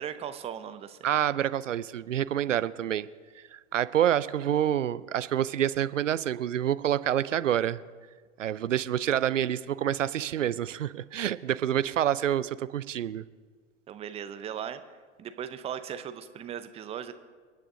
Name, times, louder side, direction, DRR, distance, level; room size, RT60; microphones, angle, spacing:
voice 1, 0.0-1.0 13.9-14.8 15.2-17.1, right 9 dB, 15° right, 11 dB, 0.6 m, -37 dB
voice 2, 1.0-3.1 3.4-7.8 8.4-13.2, right 10 dB, 75° right, 16 dB, 0.6 m, -27 dB
29.0 x 9.8 x 2.8 m, 1.5 s
figure-of-eight pair, 100°, 38 cm